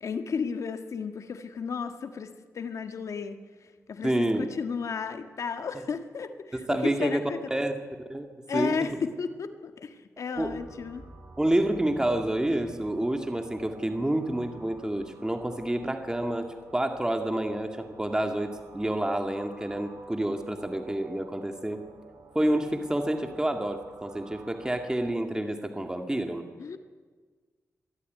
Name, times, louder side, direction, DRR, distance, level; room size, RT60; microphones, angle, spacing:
voice 1, 0.0-3.4 3.9-7.4 8.5-11.0 26.6-26.8, left 5 dB, 70° left, 8 dB, 1.7 m, -33 dB
voice 2, 4.0-4.5 6.5-7.2 7.5-7.8 8.1-8.9 10.3-10.6 11.4-21.8 22.3-26.5, right 1 dB, 15° right, 6 dB, 2.1 m, -28 dB
sound 1, 10.3-25.1, right 3 dB, 85° right, 4.9 m, -51 dB
23.0 x 13.0 x 9.5 m, 1.4 s
cardioid pair, 70°, 5 cm